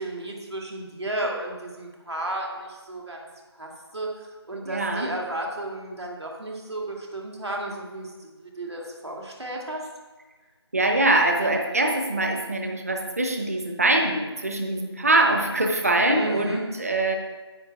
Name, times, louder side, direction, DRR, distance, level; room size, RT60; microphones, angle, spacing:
voice 1, 0.0-3.3 3.6-9.8 16.1-16.6, right 1 dB, 70° right, -1 dB, 2.5 m, -33 dB
voice 2, 4.6-5.1 10.7-17.2, right 2 dB, 35° right, 2 dB, 1.0 m, -23 dB
9.7 x 8.9 x 3.6 m, 1.2 s
figure-of-eight pair, 165°, 14 cm